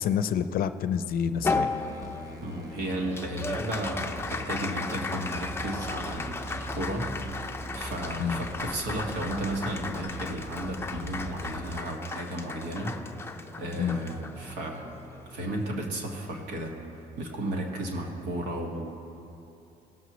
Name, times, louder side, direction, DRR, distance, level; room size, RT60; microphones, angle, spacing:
voice 1, 0.0-1.7 8.2-8.4 13.8-14.0, left 8 dB, 60° left, 11 dB, 0.5 m, -28 dB
sound 1, 1.3-11.7, right 1 dB, 20° right, 1.1 m, -41 dB
Applause, 1.4-16.1, left 3 dB, 15° left, 0.5 m, -36 dB
voice 2, 2.4-7.4 7.7-12.9 13.6-15.0 15.3-18.9, right 1 dB, 90° right, 1 dB, 1.7 m, -34 dB
19.0 x 7.1 x 3.1 m, 2.8 s
cardioid pair, 110°, 17 cm